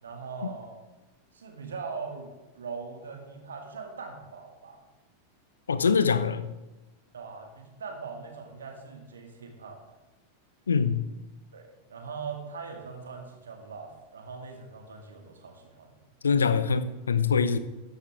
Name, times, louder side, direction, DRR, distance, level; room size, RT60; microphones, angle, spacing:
voice 1, 0.0-0.8 1.3-4.8 7.1-9.8 11.5-15.9, right 5 dB, 70° right, 3 dB, 2.2 m, -41 dB
voice 2, 5.7-6.5 10.7-11.0 16.2-17.6, left 5 dB, 70° left, 13 dB, 0.7 m, -24 dB
13.0 x 11.0 x 3.6 m, 1.1 s
figure-of-eight pair, 90°, 0 cm